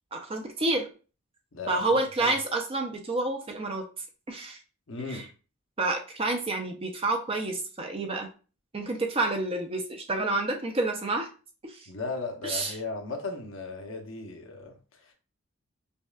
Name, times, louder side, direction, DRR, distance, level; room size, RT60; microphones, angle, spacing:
voice 1, 0.1-0.9 1.7-3.9 4.3-4.6 5.1-5.2 5.8-8.3 8.7-11.3 11.6-11.9 12.4-12.7, right 2 dB, 25° right, 0.5 m, -29 dB
voice 2, 4.9-5.3 11.9-15.1, left 3 dB, 60° left, 0.7 m, -36 dB
5.2 x 2.3 x 2.3 m
head